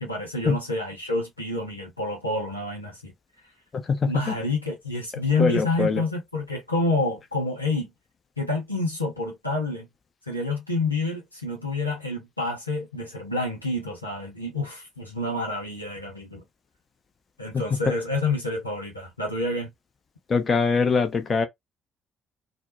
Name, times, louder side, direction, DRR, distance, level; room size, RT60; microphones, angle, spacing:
voice 1, 0.0-3.1 4.0-7.9 8.4-9.9 10.3-16.4 17.4-19.7, left 2 dB, 90° left, 0.6 m, -28 dB
voice 2, 3.7-4.4 5.4-6.0 20.3-21.5, left 4 dB, 35° left, 0.7 m, -23 dB
2.1 x 2.0 x 2.9 m
figure-of-eight pair, 45°, 0 cm